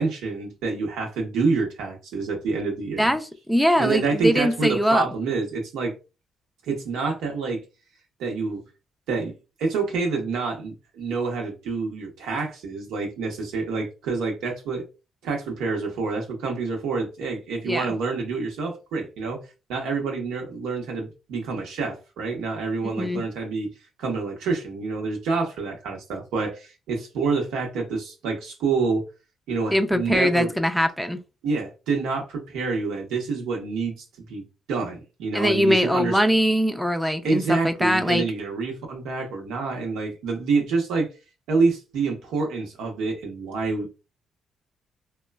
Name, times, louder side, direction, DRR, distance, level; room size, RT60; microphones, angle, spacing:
voice 1, 0.0-3.1 3.8-5.9 6.7-7.6 8.2-8.6 9.1-9.3 9.6-14.8 15.2-19.4 19.7-23.7 24.0-29.0 29.5-30.5 31.4-36.2 37.2-41.1 41.5-44.0, right 4 dB, 90° right, 0.8 m, -27 dB
voice 2, 3.0-5.1 17.7-17.9 22.8-23.2 29.7-31.2 35.3-38.3, equal, ahead, 0.4 m, -22 dB
3.0 x 2.1 x 2.2 m
cardioid pair, 90°, 0 cm